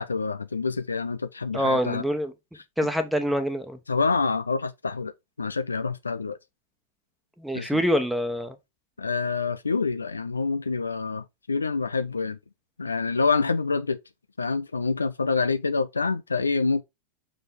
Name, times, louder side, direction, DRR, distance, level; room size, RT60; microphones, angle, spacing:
voice 1, 0.0-2.0 3.9-5.1 5.4-6.4 7.5-7.8 9.0-12.4 12.8-14.0 14.4-16.8, left 4 dB, 75° left, 0.5 m, -26 dB
voice 2, 1.5-2.3 2.8-3.8 7.4-8.6, equal, ahead, 1.3 m, -25 dB
6.2 x 4.7 x 3.7 m
figure-of-eight pair, 90°, 0 cm